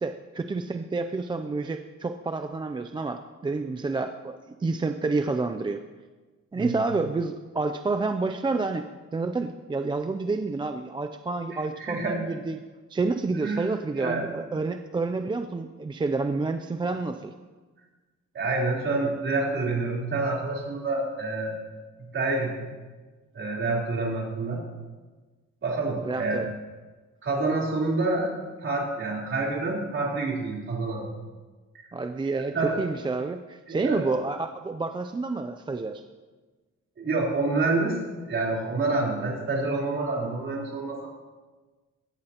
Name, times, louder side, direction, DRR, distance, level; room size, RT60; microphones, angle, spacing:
voice 1, 0.0-5.8 6.5-12.6 12.9-17.3 26.0-26.5 31.9-36.0, right 3 dB, 15° right, 7 dB, 0.4 m, -29 dB
voice 2, 11.8-12.2 13.4-13.7 14.0-14.3 18.3-21.6 22.1-22.7 23.3-24.6 25.6-26.4 27.2-28.3 28.6-31.1 32.5-32.8 33.7-34.0 37.0-38.0 38.3-41.1, right 3 dB, 45° right, -4 dB, 3.7 m, -27 dB
18.5 x 14.5 x 2.9 m, 1.3 s
wide cardioid pair, 170°, 30 cm